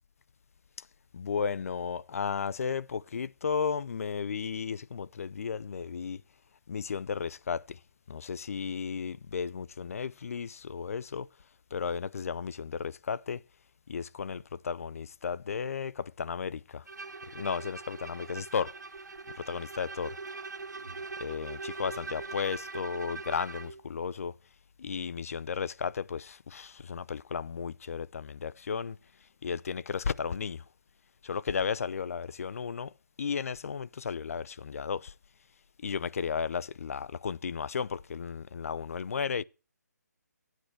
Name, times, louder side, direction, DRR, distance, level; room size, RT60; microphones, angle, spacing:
voice 1, 1.1-6.2 6.7-7.8 8.1-11.3 11.7-13.4 13.9-16.8 17.3-18.8 19.4-20.2 21.2-24.3 24.8-29.0 29.4-30.6 31.2-32.9 33.2-35.1 35.8-39.4, left 6 dB, 55° left, 0.5 m, -34 dB
Bowed string instrument, 16.9-23.8, right 4 dB, 80° right, 1.3 m, -42 dB
15.5 x 9.3 x 3.3 m
figure-of-eight pair, 155°, 9 cm